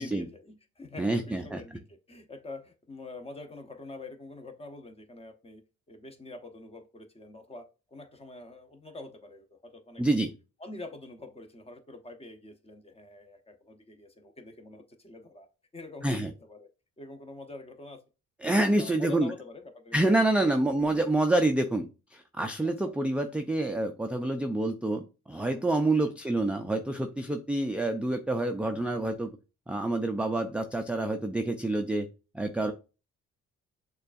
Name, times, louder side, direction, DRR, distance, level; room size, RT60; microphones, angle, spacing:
voice 1, 0.0-5.6 5.9-10.0 10.6-15.5 15.7-16.7 17.0-18.0 18.8-20.6 22.6-22.9 26.0-26.1, left 2 dB, 20° left, 0.7 m, -46 dB
voice 2, 1.0-1.6 10.0-10.3 16.0-16.3 18.4-19.3 19.9-29.3 29.7-32.1 32.3-32.7, right 2 dB, 5° right, 0.3 m, -27 dB
6.5 x 2.3 x 2.4 m
cardioid pair, 90°, 30 cm